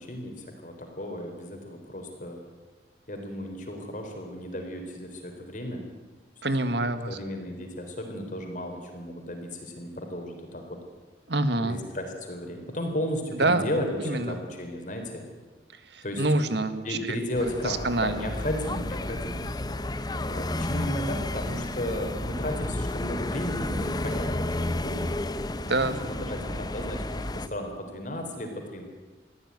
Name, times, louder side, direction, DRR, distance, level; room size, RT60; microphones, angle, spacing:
voice 1, 0.0-2.4 3.1-5.8 6.6-6.8 7.1-10.8 11.6-15.2 16.0-16.2 16.8-19.4 20.2-25.0 26.0-28.8, left 1 dB, 45° left, 3 dB, 3.8 m, -34 dB
voice 2, 6.4-7.2 11.3-11.8 13.4-13.7 14.0-14.4 15.7-17.0 17.4-18.3 25.7-26.0, right 2 dB, 70° right, 10 dB, 1.7 m, -26 dB
sound 1, 17.3-27.5, left 1 dB, 20° left, 0.8 m, -31 dB
23.0 x 15.0 x 9.6 m, 1.3 s
head